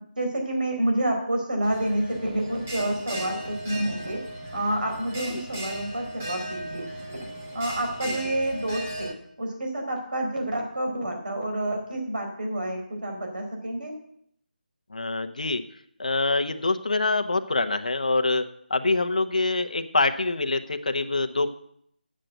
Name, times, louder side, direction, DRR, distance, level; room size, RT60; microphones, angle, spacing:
voice 1, 0.2-4.2 4.5-6.9 7.5-14.0, right 1 dB, 60° right, 2 dB, 4.2 m, -28 dB
Bell, 1.6-9.1, right 1 dB, 10° right, 0.8 m, -37 dB
voice 2, 14.9-15.6 16.0-18.4 18.7-21.5, left 3 dB, 50° left, 8 dB, 0.8 m, -25 dB
9.0 x 7.5 x 7.9 m, 0.69 s
figure-of-eight pair, 180°, 5 cm